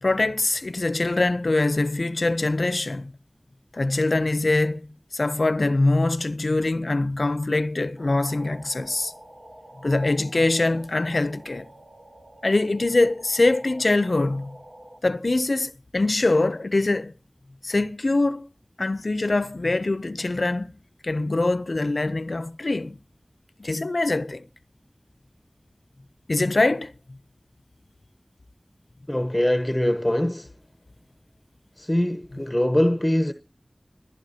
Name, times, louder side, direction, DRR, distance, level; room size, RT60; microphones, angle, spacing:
voice 1, 0.0-3.1 3.7-4.9 5.1-9.1 9.8-11.7 12.4-14.6 15.0-17.1 17.6-18.4 18.8-20.7 21.0-23.0 23.6-24.4 26.3-26.9, left 2 dB, 80° left, 0.6 m, -23 dB
sound 1, 8.0-15.0, right 1 dB, 60° right, 3.6 m, -47 dB
voice 2, 29.1-30.5 31.8-33.3, left 1 dB, 20° left, 1.0 m, -23 dB
21.0 x 15.0 x 2.8 m
wide cardioid pair, 45°, 0 cm